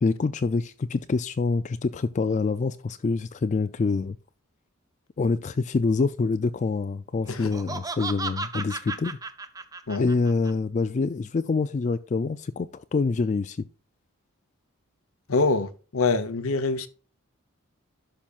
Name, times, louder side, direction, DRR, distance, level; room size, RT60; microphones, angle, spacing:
voice 1, 0.0-4.2 5.2-9.2 10.0-13.6, left 4 dB, 35° left, 0.3 m, -26 dB
Laughter, 7.3-10.5, right 3 dB, 15° right, 0.5 m, -35 dB
voice 2, 15.3-16.9, left 3 dB, 75° left, 0.8 m, -25 dB
12.0 x 5.7 x 2.4 m
head